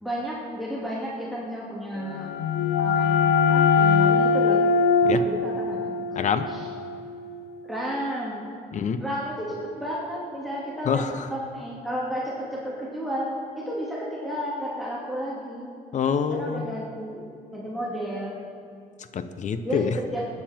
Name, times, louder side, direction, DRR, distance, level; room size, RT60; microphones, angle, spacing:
voice 1, 0.0-2.3 2.8-4.6 5.0-6.0 6.5-6.7 7.6-8.4 9.0-15.7 16.3-17.2 17.5-18.4 19.6-19.9 20.1-20.2, equal, ahead, -5 dB, 2.5 m, -32 dB
sound 1, 2.0-7.6, left 5 dB, 80° left, 0.6 m, -22 dB
voice 2, 6.1-6.5 8.7-9.0 10.8-11.3 15.9-16.7 19.1-20.0, left 6 dB, 45° left, 11 dB, 0.9 m, -26 dB
20.5 x 9.7 x 4.4 m, 2.4 s
cardioid pair, 110°, 17 cm